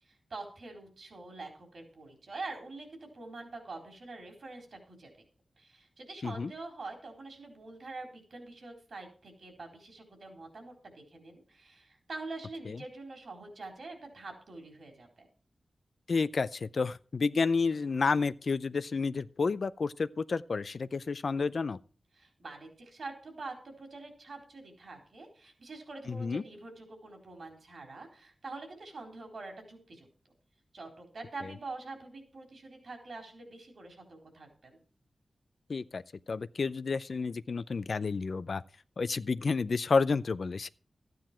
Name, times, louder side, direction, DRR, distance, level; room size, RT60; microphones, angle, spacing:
voice 1, 0.0-5.1 5.6-15.3 22.1-30.1 30.7-34.8, right 3 dB, 70° right, 4.0 m, -45 dB
voice 2, 16.1-21.8 26.1-26.4 35.7-36.0 36.3-38.6 39.0-40.7, left 4 dB, 65° left, 0.5 m, -30 dB
13.0 x 9.4 x 4.4 m
cardioid pair, 60°, 0 cm